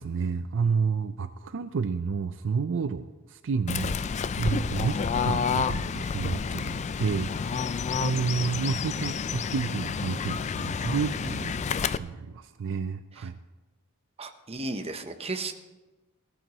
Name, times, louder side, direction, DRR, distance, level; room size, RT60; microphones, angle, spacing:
voice 1, 0.0-4.0 4.4-7.7 8.0-13.4, right 5 dB, 60° right, 11 dB, 0.4 m, -30 dB
Fowl / Bird, 3.7-12.0, left 6 dB, 30° left, 0.3 m, -29 dB
voice 2, 14.2-15.5, right 2 dB, 25° right, 7 dB, 0.9 m, -34 dB
17.5 x 14.0 x 3.0 m, 1.1 s
head